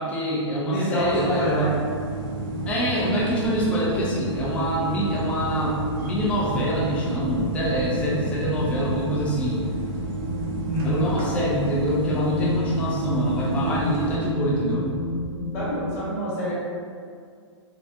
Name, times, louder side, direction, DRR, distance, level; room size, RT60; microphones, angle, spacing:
voice 1, 0.0-1.7 2.7-9.6 10.8-14.9, equal, 10° left, -7 dB, 0.5 m, -25 dB
voice 2, 0.7-1.7 10.4-11.1 15.5-16.5, left 1 dB, 30° left, -11 dB, 1.2 m, -27 dB
sound 1, 1.0-14.2, right 3 dB, 45° right, 0.7 m, -32 dB
sound 2, 1.3-15.9, left 1 dB, 75° left, 1.0 m, -33 dB
3.5 x 3.3 x 2.6 m, 2.2 s
hypercardioid pair, 160°, 16 cm